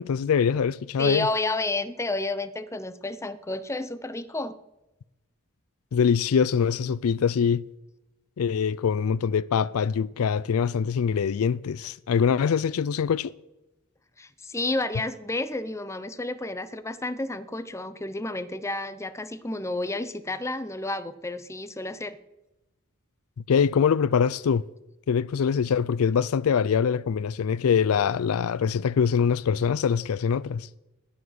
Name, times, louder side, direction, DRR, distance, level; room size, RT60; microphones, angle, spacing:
voice 1, 0.0-1.3 5.9-7.6 8.4-13.3 23.4-24.6 25.1-30.7, left 7 dB, 75° left, 0.4 m, -24 dB
voice 2, 1.0-4.6 14.2-22.2, left 2 dB, 15° left, 0.6 m, -31 dB
20.0 x 7.2 x 6.3 m
head